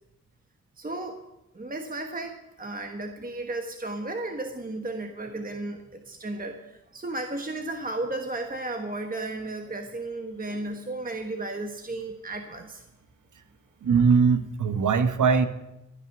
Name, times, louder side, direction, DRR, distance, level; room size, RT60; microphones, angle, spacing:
voice 1, 0.8-1.2 1.5-12.8, right 2 dB, 25° right, 6 dB, 1.3 m, -34 dB
voice 2, 13.8-15.5, right 5 dB, 60° right, 10 dB, 1.2 m, -21 dB
12.5 x 9.7 x 5.8 m, 0.95 s
hypercardioid pair, 40°, 35 cm